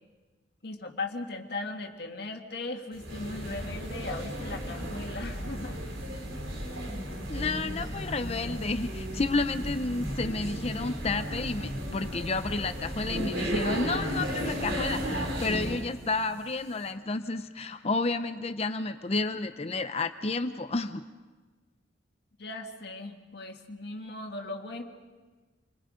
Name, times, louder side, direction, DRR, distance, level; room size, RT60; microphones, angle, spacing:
voice 1, 0.6-5.8 22.4-24.8, left 2 dB, 55° left, 2 dB, 1.9 m, -38 dB
sound 1, 2.9-15.9, equal, 75° right, 3.2 m, -34 dB
voice 2, 7.3-21.0, left 3 dB, 30° left, 9 dB, 0.6 m, -31 dB
28.5 x 21.0 x 5.1 m, 1.3 s
head